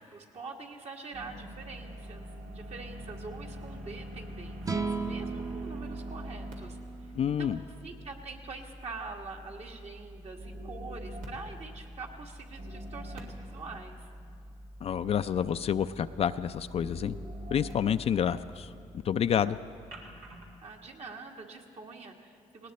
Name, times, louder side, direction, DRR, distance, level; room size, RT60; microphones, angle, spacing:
voice 1, 0.0-7.1 7.4-7.6 7.8-14.1 20.6-22.7, right 4 dB, 55° right, 1 dB, 1.8 m, -45 dB
sound 1, 1.1-20.6, equal, 90° right, 2.1 m, -44 dB
sound 2, 4.6-7.9, right 4 dB, 25° right, 0.8 m, -37 dB
voice 2, 7.1-7.6 14.8-17.2 17.5-18.7 19.0-19.6, left 8 dB, 50° left, 11 dB, 0.4 m, -28 dB
18.5 x 18.5 x 4.2 m, 2.3 s
cardioid pair, 85°, 13 cm